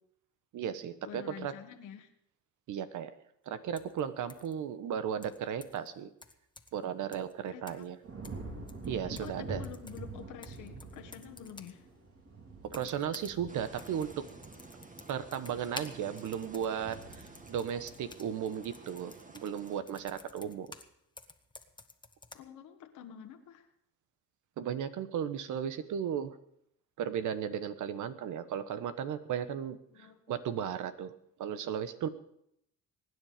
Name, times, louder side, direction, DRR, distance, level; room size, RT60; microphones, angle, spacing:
voice 1, 0.5-1.5 2.7-3.2 3.5-6.1 6.7-8.0 8.9-9.6 12.7-14.3 15.1-20.7 24.6-26.4 27.0-31.1 31.4-32.1, right 8 dB, 80° right, 12 dB, 1.3 m, -35 dB
voice 2, 1.0-2.1 7.4-7.8 9.2-11.8 22.3-23.7 29.9-30.2, left 9 dB, 90° left, 5 dB, 1.6 m, -48 dB
sound 1, 3.8-4.0 4.3-4.5 5.2-5.9 6.2-6.8 7.1-7.3 7.7-7.9 8.2-9.4 9.6-11.8 12.7-13.4 13.7-20.9 21.2-22.4, left 3 dB, 15° left, 1.4 m, -52 dB
sound 2, 8.0-19.3 19.8-20.2, right 3 dB, 50° right, 4.0 m, -46 dB
sound 3, 13.5-19.8, right 2 dB, 25° right, 2.0 m, -52 dB
24.0 x 9.9 x 5.1 m, 0.73 s
cardioid pair, 90°, 30 cm